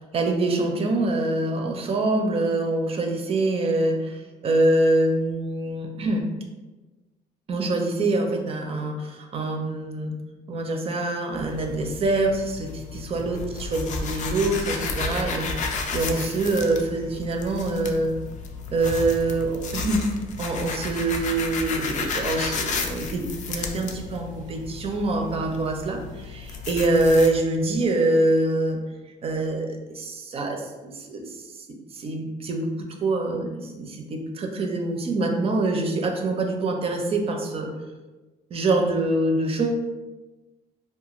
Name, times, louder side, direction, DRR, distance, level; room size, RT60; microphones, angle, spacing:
voice 1, 0.1-6.3 7.5-10.1 10.5-15.5 15.9-18.2 18.7-20.1 20.4-28.8 29.2-31.7 31.9-37.7 38.5-39.7, right 2 dB, 35° right, 3 dB, 0.4 m, -25 dB
sound 1, 11.3-27.3, left 4 dB, 45° left, 0.4 m, -32 dB
2.3 x 2.2 x 2.9 m, 1.2 s
cardioid pair, 110°, 17 cm